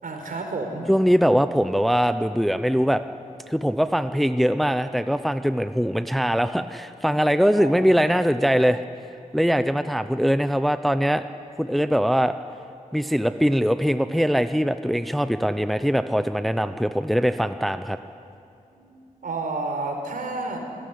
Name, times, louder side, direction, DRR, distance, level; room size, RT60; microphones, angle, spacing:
voice 1, 0.0-0.9 2.5-2.6 7.5-7.7 18.7-19.0 19.2-20.6, right 3 dB, 75° right, 3 dB, 4.6 m, -31 dB
voice 2, 0.9-3.0 3.5-8.8 9.3-11.2 11.6-12.4 12.9-18.0, equal, ahead, 10 dB, 0.7 m, -22 dB
27.0 x 17.0 x 9.8 m, 2.6 s
wide cardioid pair, 105°, 14 cm